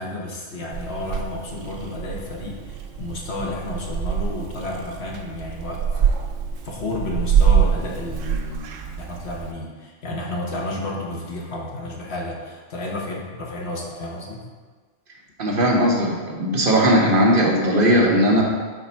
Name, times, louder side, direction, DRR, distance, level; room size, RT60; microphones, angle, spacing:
voice 1, 0.0-6.2 6.6-14.4, left 2 dB, 55° left, -2 dB, 1.3 m, -31 dB
Purr / Meow, 0.7-9.5, right 7 dB, 75° right, 0.9 m, -25 dB
voice 2, 15.4-18.4, equal, 45° right, -2 dB, 1.1 m, -18 dB
5.1 x 3.9 x 5.5 m, 1.5 s
omnidirectional pair, 1.3 m